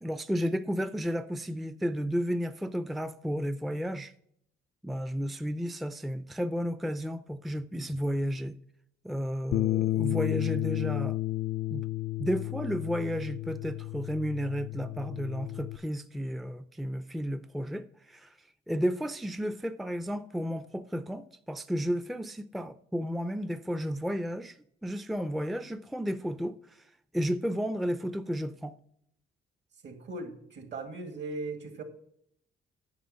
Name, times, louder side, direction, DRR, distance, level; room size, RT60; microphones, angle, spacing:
voice 1, 0.0-4.1 4.8-8.5 9.0-11.2 11.7-11.9 12.2-18.4 18.7-26.8 27.1-28.7, equal, ahead, 0.4 m, -32 dB
Bass guitar, 9.5-15.8, left 16 dB, 55° left, 0.4 m, -32 dB
voice 2, 29.8-31.8, right 3 dB, 65° right, 2.2 m, -38 dB
9.5 x 6.0 x 5.8 m
cardioid pair, 90°, 20 cm